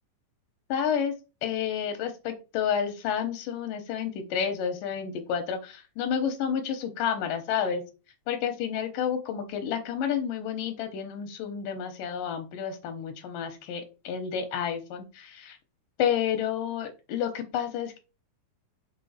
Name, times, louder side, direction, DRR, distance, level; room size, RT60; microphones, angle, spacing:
voice 1, 0.7-1.1 1.4-7.8 8.3-15.6 16.0-18.0, left 8 dB, 90° left, 6 dB, 2.8 m, -30 dB
7.5 x 4.1 x 5.7 m, 0.31 s
omnidirectional pair, 3.8 m